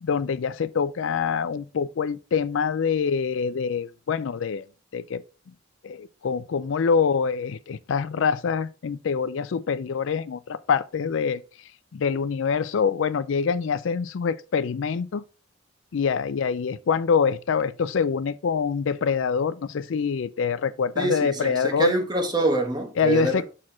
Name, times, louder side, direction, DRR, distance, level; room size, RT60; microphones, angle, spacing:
voice 1, 0.0-4.6 4.9-5.2 5.8-11.4 11.9-15.2 15.9-21.9 23.0-23.4, left 6 dB, 70° left, 0.4 m, -25 dB
voice 2, 20.9-23.4, right 2 dB, 20° right, 1.3 m, -25 dB
6.4 x 4.3 x 4.2 m
head